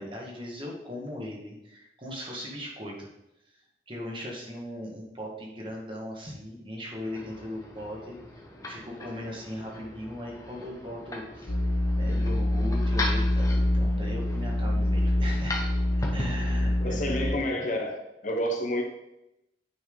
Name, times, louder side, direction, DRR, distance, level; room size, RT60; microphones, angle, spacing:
voice 1, 0.0-3.1 3.5-3.6 3.9-8.2 8.7-11.6 12.0-15.6 16.1-17.5, left 1 dB, 30° right, -2 dB, 1.9 m, -38 dB
sound 1, 6.9-17.5, left 2 dB, 20° left, 1.3 m, -39 dB
sound 2, 11.5-17.3, left 1 dB, 90° left, 1.2 m, -26 dB
voice 2, 16.8-18.8, equal, 45° left, 2 dB, 1.2 m, -29 dB
9.3 x 5.9 x 4.0 m, 0.87 s
head